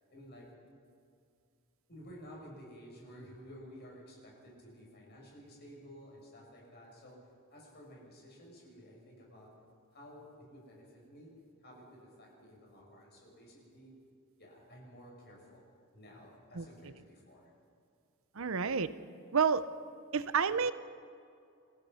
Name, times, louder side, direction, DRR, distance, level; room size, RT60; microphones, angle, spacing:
voice 1, 0.1-0.5 1.9-7.2 7.5-9.5 9.9-11.3 11.6-14.0 14.4-15.6 15.9-17.4, equal, 50° left, -2 dB, 7.3 m, -53 dB
voice 2, 16.5-16.9 18.3-18.9 19.3-19.7 20.1-20.7, right 6 dB, 65° right, 13 dB, 0.7 m, -30 dB
29.0 x 16.0 x 5.7 m, 2.4 s
head